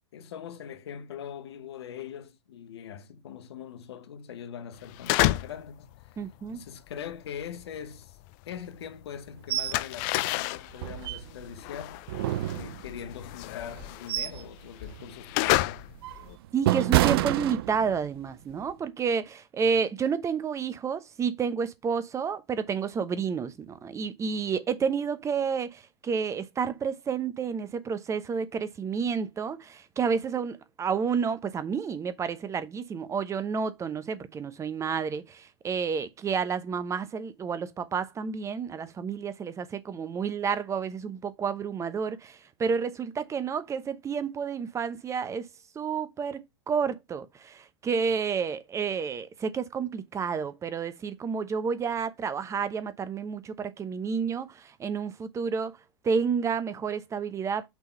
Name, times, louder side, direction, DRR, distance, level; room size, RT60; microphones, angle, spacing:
voice 1, 0.1-6.2 6.5-8.2 8.5-12.0 12.5-15.8, left 8 dB, 70° left, 1.0 m, -42 dB
sound 1, 4.8-5.7 6.0-8.9 9.2-16.3, left 19 dB, 50° left, 0.4 m, -30 dB
voice 2, 6.2-6.6 16.5-45.5 45.7-55.8 56.0-57.7, right 6 dB, 20° right, 0.9 m, -30 dB
sound 2, 9.5-9.8 10.2-10.3 10.8-11.6 12.1-13.1 13.7-14.5 14.9-15.1 15.7-18.1 18.5-18.7, right 14 dB, 65° right, 0.5 m, -28 dB
6.1 x 3.7 x 4.4 m
hypercardioid pair, 105°, 14 cm